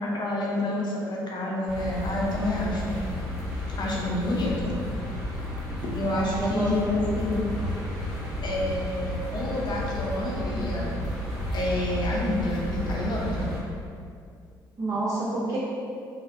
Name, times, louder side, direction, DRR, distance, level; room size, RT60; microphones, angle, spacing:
voice 1, 0.0-3.0 3.7-4.7 5.9-7.4 8.4-10.9 11.5-13.5, left 1 dB, 40° left, -4 dB, 0.6 m, -28 dB
sound 1, 1.7-13.6, left 1 dB, ahead, 1.4 m, -32 dB
voice 2, 6.1-7.0 14.8-15.6, right 2 dB, 35° right, -9 dB, 0.6 m, -29 dB
2.4 x 2.0 x 2.6 m, 2.4 s
hypercardioid pair, 55°, 11 cm